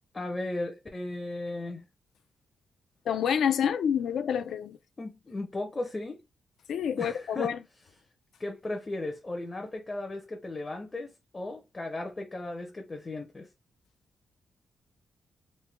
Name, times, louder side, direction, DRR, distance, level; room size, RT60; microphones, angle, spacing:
voice 1, 0.1-1.9 5.0-6.2 7.0-7.5 8.4-13.5, left 2 dB, 20° left, 0.5 m, -36 dB
voice 2, 3.1-4.8 6.7-7.6, left 8 dB, 75° left, 0.3 m, -28 dB
3.1 x 2.1 x 3.3 m
wide cardioid pair, 175°, 0 cm